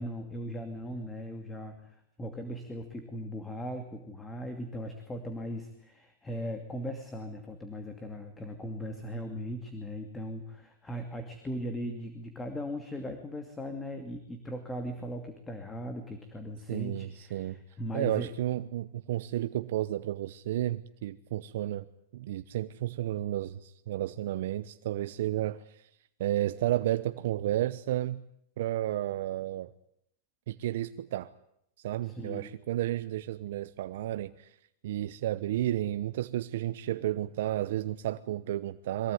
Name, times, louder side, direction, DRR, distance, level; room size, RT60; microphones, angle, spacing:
voice 1, 0.0-18.3 32.0-32.5, equal, 10° left, 6 dB, 2.5 m, -39 dB
voice 2, 16.7-17.6 17.9-21.9 22.1-25.9 26.2-28.2 28.6-29.7 30.5-31.3 31.8-34.6 34.8-39.1, right 13 dB, 70° right, 11 dB, 0.9 m, -32 dB
23.0 x 17.0 x 9.5 m, 0.76 s
supercardioid pair, 140°, 0 cm